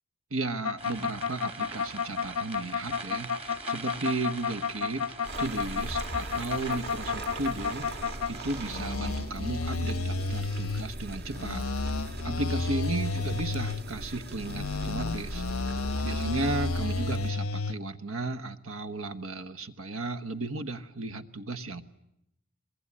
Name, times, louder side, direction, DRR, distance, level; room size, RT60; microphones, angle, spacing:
voice 1, 0.3-5.1 5.4-7.9 8.3-11.7 12.2-15.4 15.7-21.8, right 2 dB, 75° right, 10 dB, 1.3 m, -34 dB
sound 1, 0.6-8.3 8.6-10.8 11.3-13.8 14.4-17.8, left 4 dB, 85° left, 0.9 m, -31 dB
sound 2, 0.8-9.0, right 3 dB, 30° right, 1.8 m, -43 dB
sound 3, 5.2-17.3, right 1 dB, 50° right, 1.6 m, -40 dB
23.0 x 21.5 x 9.8 m, 0.80 s
head